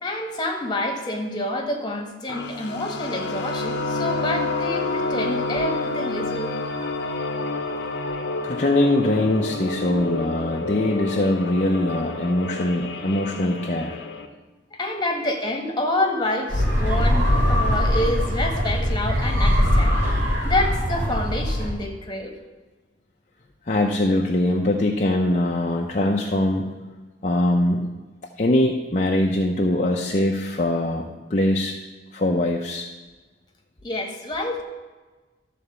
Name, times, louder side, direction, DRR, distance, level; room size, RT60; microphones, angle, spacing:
voice 1, 0.0-6.5 14.8-20.0 20.4-22.3 33.8-34.6, left 1 dB, 25° left, 1 dB, 1.5 m, -27 dB
sound 1, 2.3-14.3, left 3 dB, 65° left, 0.9 m, -29 dB
voice 2, 8.4-14.0 23.7-26.7 27.2-27.9 28.4-31.7 32.1-32.9, left 1 dB, 40° left, 0 dB, 0.7 m, -22 dB
sound 2, 16.5-21.7, equal, 70° right, 3.2 m, -21 dB
12.5 x 4.2 x 6.9 m, 1.3 s
head